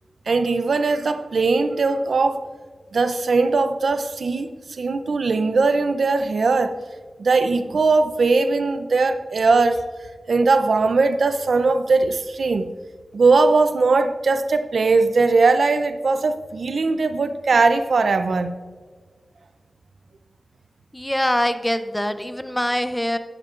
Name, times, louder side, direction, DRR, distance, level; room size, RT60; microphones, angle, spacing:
voice 1, 0.3-2.5 2.9-6.8 7.2-9.8 10.3-12.7 13.1-18.5, right 3 dB, 85° right, 0.6 m, -20 dB
voice 2, 20.9-23.2, equal, 10° left, 0.6 m, -23 dB
12.5 x 10.5 x 2.5 m
wide cardioid pair, 65°, 0 cm